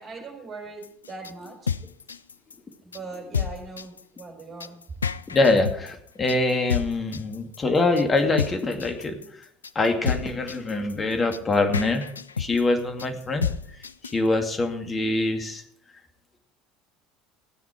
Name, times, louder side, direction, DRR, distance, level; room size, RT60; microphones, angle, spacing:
voice 1, 0.0-1.7 2.8-4.8, right 3 dB, 40° right, 4 dB, 4.6 m, -40 dB
sound 1, 0.8-14.3, left 7 dB, 85° left, 0.4 m, -31 dB
voice 2, 5.3-9.2 9.7-12.1 12.4-13.5 14.1-15.6, left 2 dB, 25° left, 5 dB, 2.4 m, -24 dB
16.0 x 9.4 x 4.5 m, 0.66 s
figure-of-eight pair, 65°, 0 cm